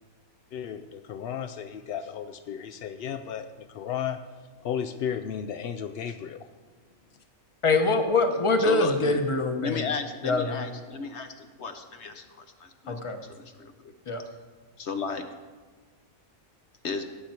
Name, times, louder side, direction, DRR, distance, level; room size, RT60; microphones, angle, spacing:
voice 1, 0.5-4.2 4.6-6.5, left 8 dB, 75° left, 8 dB, 0.5 m, -34 dB
voice 2, 7.6-9.9 10.2-10.6 12.9-13.2 14.1-14.2, left 3 dB, 25° left, 6 dB, 0.9 m, -24 dB
voice 3, 8.6-9.2 9.6-13.0 13.2-13.9 14.8-15.3 16.8-17.0, left 5 dB, 55° left, 7 dB, 0.9 m, -34 dB
17.0 x 8.1 x 4.4 m, 1.4 s
omnidirectional pair, 1.5 m